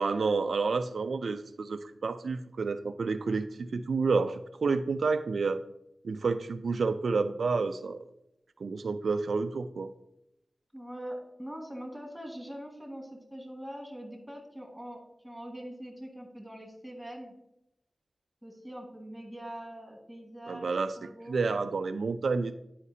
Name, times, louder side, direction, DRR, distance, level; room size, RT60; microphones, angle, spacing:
voice 1, 0.0-5.6 6.0-8.0 8.6-9.9 20.5-22.6, right 4 dB, 85° right, 9 dB, 0.3 m, -30 dB
voice 2, 10.7-15.0 15.2-17.3 18.4-21.4, equal, ahead, 0 dB, 1.8 m, -43 dB
9.8 x 5.0 x 2.7 m, 0.83 s
wide cardioid pair, 95°, 0 cm